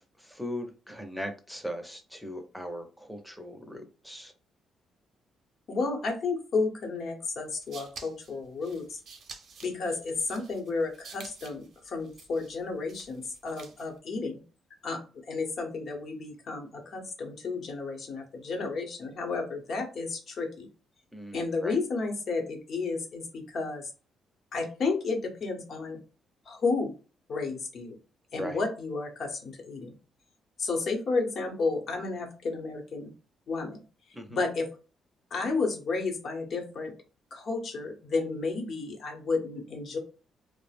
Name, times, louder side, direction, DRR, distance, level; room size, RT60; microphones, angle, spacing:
voice 1, 0.0-4.3 21.1-21.8 28.3-28.6 34.1-34.4, equal, ahead, 5 dB, 0.6 m, -39 dB
voice 2, 5.7-9.0 9.6-14.4 14.8-15.0 15.3-20.7 21.3-23.9 24.5-26.0 26.5-26.9 27.3-27.9 28.3-29.9 30.6-33.1 33.5-33.8 34.3-34.7 35.3-36.9 37.3-40.0, left 3 dB, 60° left, 3 dB, 0.8 m, -32 dB
sound 1, 7.4-14.0, right 5 dB, 65° right, 0.6 m, -50 dB
2.3 x 2.0 x 3.3 m, 0.35 s
cardioid pair, 90°, 0 cm